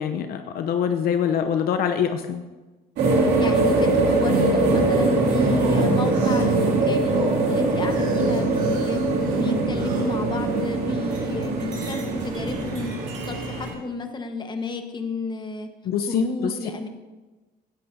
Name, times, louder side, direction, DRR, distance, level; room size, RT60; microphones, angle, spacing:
voice 1, 0.0-2.4 15.8-16.9, left 8 dB, 65° left, 7 dB, 0.7 m, -24 dB
sound 1, 3.0-13.7, right 2 dB, 80° right, 2.4 m, -22 dB
voice 2, 3.4-9.0 9.4-15.7 16.1-16.9, left 3 dB, 25° left, 6 dB, 1.3 m, -31 dB
sound 2, 5.2-11.0 11.5-12.2, right 3 dB, 65° right, 4.5 m, -44 dB
sound 3, 8.6-10.7 11.0-13.7, right 4 dB, 50° right, 3.0 m, -45 dB
17.0 x 11.0 x 2.7 m, 1.2 s
cardioid pair, 110°, 17 cm